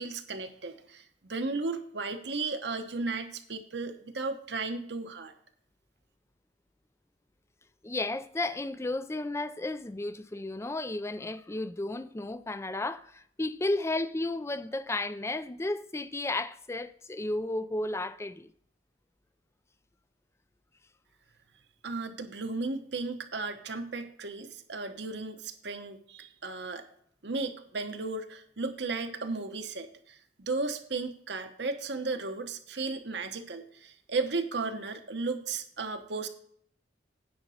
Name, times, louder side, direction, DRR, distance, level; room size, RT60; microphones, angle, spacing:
voice 1, 0.0-5.3 21.8-26.8 27.2-36.3, right 3 dB, 65° right, 1.0 m, -35 dB
voice 2, 7.8-18.5, left 2 dB, 15° left, 0.4 m, -33 dB
9.5 x 5.3 x 6.3 m
head